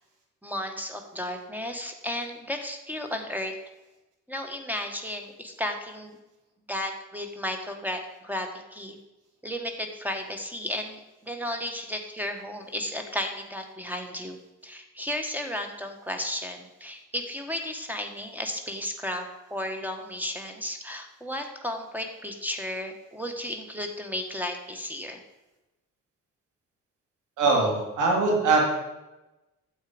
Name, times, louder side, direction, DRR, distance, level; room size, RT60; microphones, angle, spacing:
voice 1, 0.4-3.5 4.3-6.2 6.7-9.0 9.4-14.4 14.6-25.2, left 1 dB, 5° right, 5 dB, 1.4 m, -34 dB
voice 2, 27.4-28.6, right 3 dB, 90° right, 0 dB, 2.9 m, -22 dB
9.4 x 7.4 x 5.1 m, 1.0 s
cardioid pair, 90°, 30 cm